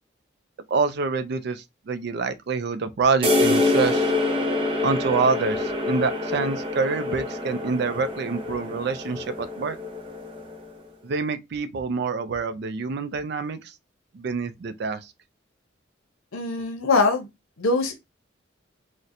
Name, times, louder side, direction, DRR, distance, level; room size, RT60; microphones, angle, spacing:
voice 1, 0.7-4.1 4.8-9.8 11.0-13.7 14.1-15.1, right 4 dB, 55° right, 0.4 m, -26 dB
sound 1, 3.2-10.8, left 2 dB, 25° right, 0.7 m, -26 dB
voice 2, 16.3-17.3 17.6-17.9, left 3 dB, 85° left, 0.6 m, -22 dB
4.1 x 2.1 x 2.5 m
head